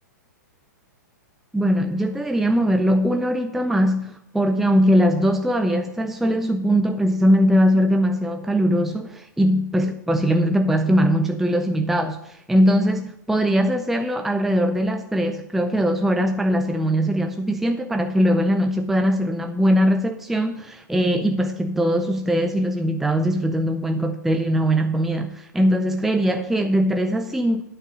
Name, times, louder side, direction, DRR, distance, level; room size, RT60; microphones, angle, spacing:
voice 1, 1.5-27.6, equal, 5° right, 6 dB, 0.5 m, -21 dB
9.7 x 5.4 x 7.5 m, 0.78 s
hypercardioid pair, 115°, 10 cm